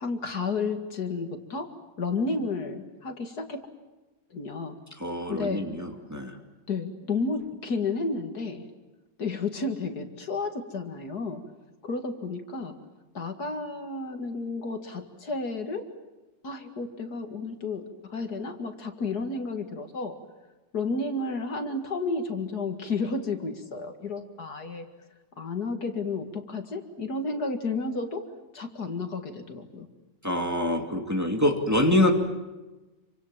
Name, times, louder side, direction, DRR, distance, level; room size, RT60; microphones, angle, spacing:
voice 1, 0.0-1.7 2.0-3.6 4.3-4.8 5.3-5.6 6.7-8.6 9.2-11.4 11.8-12.7 13.1-15.9 16.4-20.1 20.7-24.9 25.4-28.2 28.5-29.9, left 3 dB, 60° left, 6 dB, 2.6 m, -32 dB
voice 2, 5.0-6.4 30.2-32.1, left 1 dB, 10° right, 2 dB, 2.4 m, -25 dB
28.0 x 25.5 x 7.4 m, 1.1 s
omnidirectional pair, 1.9 m